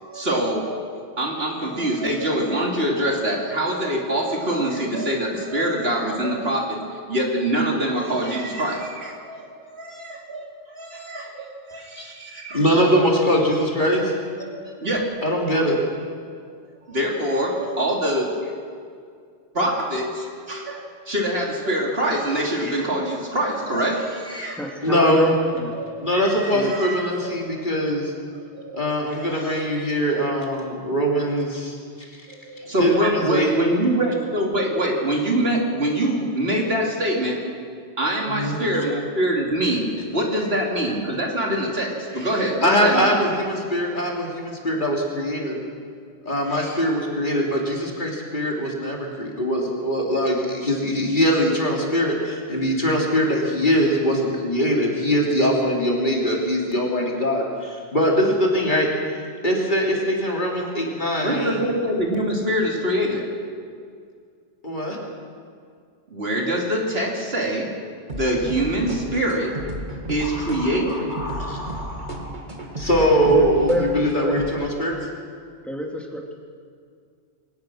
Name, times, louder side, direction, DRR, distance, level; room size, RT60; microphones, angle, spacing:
voice 1, 0.0-6.8 7.1-12.6 12.9-13.0 14.4-15.0 16.9-18.5 19.5-24.6 24.9-25.1 25.7-27.6 28.5-28.8 29.0-29.6 32.4-37.4 38.0-43.1 46.5-46.8 61.2-63.2 66.1-67.7 68.1-69.5 70.1-71.2, right 1 dB, 55° right, -1 dB, 3.3 m, -25 dB
voice 2, 12.5-14.1 15.2-15.8 24.8-25.3 26.0-28.1 28.7-32.1 32.8-33.5 38.3-38.6 42.6-45.6 46.2-61.7 64.6-65.0 70.2-75.0, equal, 40° left, -1 dB, 3.4 m, -22 dB
voice 3, 24.5-25.7 26.5-26.7 73.3-74.3 75.7-76.3, equal, ahead, 0 dB, 2.8 m, -26 dB
sound 1, 68.1-74.5, right 1 dB, 40° right, 2.2 m, -34 dB
22.5 x 19.5 x 6.4 m, 2.2 s
omnidirectional pair, 1.2 m